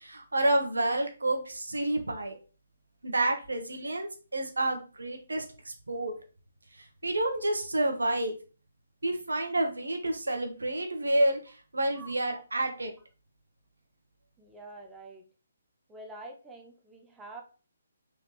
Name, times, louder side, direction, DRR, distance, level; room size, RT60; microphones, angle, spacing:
voice 1, 0.0-2.4 3.0-6.1 6.7-8.3 9.0-12.9, right 1 dB, 80° right, 4 dB, 1.0 m, -29 dB
voice 2, 14.4-15.3 15.9-17.4, right 2 dB, 10° right, 1 dB, 0.7 m, -46 dB
3.8 x 3.3 x 3.2 m, 0.36 s
figure-of-eight pair, 140°, 0 cm